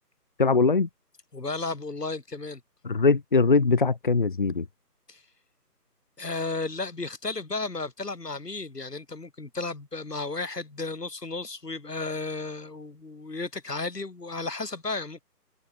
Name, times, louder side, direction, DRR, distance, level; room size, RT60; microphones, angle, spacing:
voice 1, 0.4-0.9 2.8-4.7, left 4 dB, 30° left, 1.1 m, -21 dB
voice 2, 1.3-2.6 5.1-5.2 6.2-15.2, left 3 dB, 70° left, 2.9 m, -33 dB
figure-of-eight pair, 155°, 49 cm